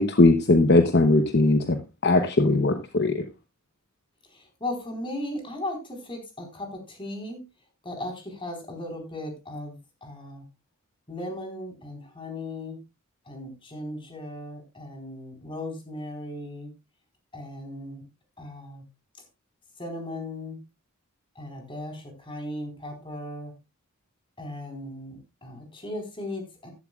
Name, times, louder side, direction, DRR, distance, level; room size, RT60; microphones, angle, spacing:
voice 1, 0.0-3.2, left 2 dB, 50° left, 0.9 m, -20 dB
voice 2, 4.3-7.4 7.8-10.4 11.1-12.8 13.3-16.7 17.3-18.0 18.4-18.8 19.8-20.6 21.4-23.5 24.4-26.7, left 1 dB, 25° left, 4.2 m, -37 dB
14.5 x 12.5 x 2.4 m
head